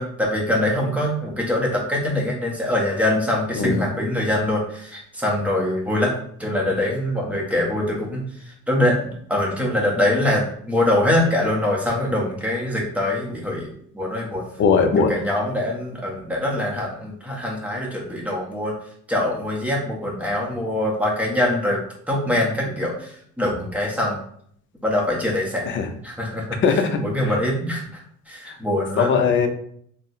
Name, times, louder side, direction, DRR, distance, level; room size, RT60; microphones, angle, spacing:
voice 1, 0.0-6.1 6.4-8.2 8.7-13.7 13.9-14.4 15.0-18.7 19.1-21.8 22.1-24.2 24.8-25.7 26.0-28.0 28.3-29.1, left 1 dB, 5° right, -2 dB, 0.7 m, -23 dB
voice 2, 3.6-3.9 14.6-15.1 25.7-25.9 26.6-27.0 29.0-29.5, left 5 dB, 45° left, 5 dB, 0.5 m, -18 dB
3.9 x 2.0 x 2.7 m, 0.64 s
cardioid pair, 150°, 29 cm